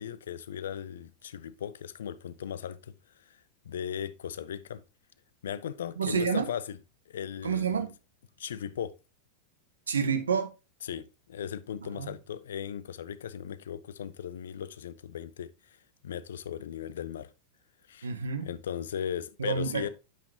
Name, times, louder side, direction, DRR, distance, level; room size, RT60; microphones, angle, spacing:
voice 1, 0.0-2.9 3.3-3.4 3.6-4.8 5.4-6.8 7.1-7.7 8.4-8.9 10.8-15.5 16.0-17.3 17.9-18.1 18.4-19.9, left 9 dB, 60° left, 0.5 m, -37 dB
voice 2, 6.0-6.5 7.4-7.9 9.9-10.5 11.9-12.1 18.0-18.5 19.4-19.9, right 6 dB, 70° right, 1.1 m, -29 dB
9.1 x 5.9 x 2.8 m
figure-of-eight pair, 90°, 0 cm